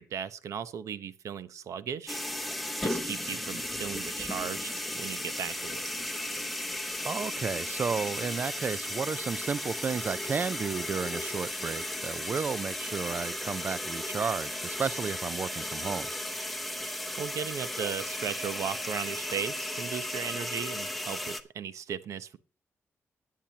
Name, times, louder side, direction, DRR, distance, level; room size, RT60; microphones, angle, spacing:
voice 1, 0.0-2.2 2.8-5.8 17.2-22.4, right 8 dB, 80° right, 0.7 m, -37 dB
sound 1, 2.1-21.4, left 1 dB, ahead, 0.9 m, -35 dB
voice 2, 7.0-16.1, right 5 dB, 35° right, 0.4 m, -33 dB
19.0 x 7.4 x 2.8 m
wide cardioid pair, 145°, 5 cm